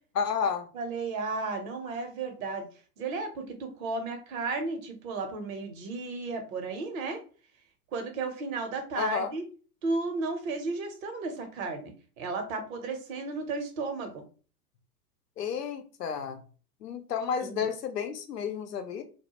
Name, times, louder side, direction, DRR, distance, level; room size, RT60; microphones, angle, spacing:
voice 1, 0.2-0.7 9.0-9.3 15.4-16.4 16.8-19.0, left 6 dB, 85° left, 0.6 m, -31 dB
voice 2, 0.7-2.7 3.0-7.2 7.9-9.4 9.8-14.2 17.4-17.7, right 3 dB, 60° right, 0.9 m, -34 dB
2.2 x 2.1 x 2.9 m
hypercardioid pair, 100°, 47 cm